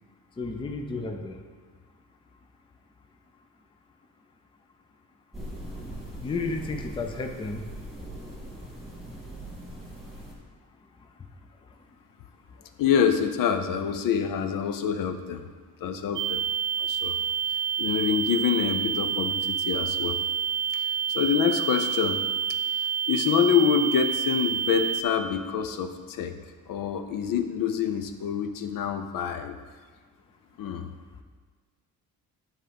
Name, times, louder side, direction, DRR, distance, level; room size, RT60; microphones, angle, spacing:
voice 1, 0.4-1.4 6.2-7.6, left 3 dB, 15° left, 4 dB, 0.5 m, -32 dB
sound 1, 5.3-10.3, right 1 dB, ahead, 1.9 m, -41 dB
voice 2, 12.8-15.5 15.8-16.4 16.8-17.2 17.8-20.2 20.7-20.8 21.1-22.2 23.1-26.3 26.7-29.6 30.6-30.9, left 7 dB, 65° left, 8 dB, 0.7 m, -26 dB
sound 2, 16.2-25.0, right 8 dB, 60° right, 0.5 m, -28 dB
10.0 x 3.8 x 5.2 m, 1.5 s
cardioid pair, 145°, 36 cm